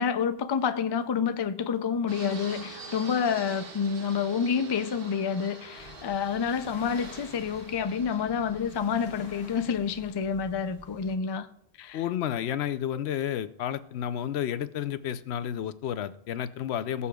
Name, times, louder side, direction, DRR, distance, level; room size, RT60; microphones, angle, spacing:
voice 1, 0.0-11.5 11.8-12.0, left 6 dB, 45° left, 0.3 m, -28 dB
Fixed-wing aircraft airplane, 2.1-9.6, right 4 dB, 60° right, 1.2 m, -46 dB
sound 1, 5.7-11.2, left 4 dB, 70° left, 1.3 m, -49 dB
voice 2, 11.9-17.1, left 10 dB, 85° left, 0.8 m, -31 dB
20.5 x 6.9 x 2.3 m
omnidirectional pair, 1.1 m